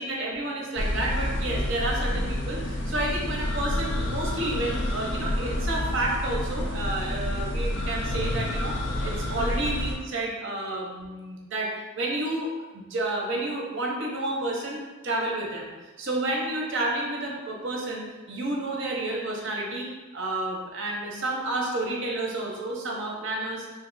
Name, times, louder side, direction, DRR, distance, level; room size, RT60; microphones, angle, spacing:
voice 1, 0.0-8.8 9.0-12.5 12.7-19.9 20.1-23.7, right 2 dB, 60° right, -2 dB, 0.7 m, -30 dB
sound 1, 0.8-10.0, left 1 dB, 55° left, 0.4 m, -29 dB
2.7 x 2.3 x 3.8 m, 1.2 s
head